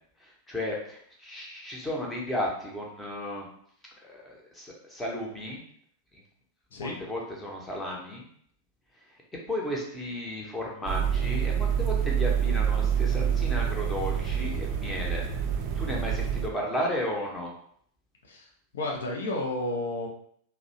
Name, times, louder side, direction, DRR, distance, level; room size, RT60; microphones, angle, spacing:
voice 1, 0.2-3.5 4.1-5.6 6.7-8.2 9.5-15.2 15.8-17.5, left 1 dB, 10° left, -2 dB, 0.7 m, -34 dB
sound 1, 10.9-16.5, right 8 dB, 40° right, 0.3 m, -27 dB
voice 2, 18.2-20.1, left 2 dB, 65° left, -1 dB, 0.5 m, -32 dB
2.7 x 2.0 x 2.7 m, 0.64 s
figure-of-eight pair, 90°, 0 cm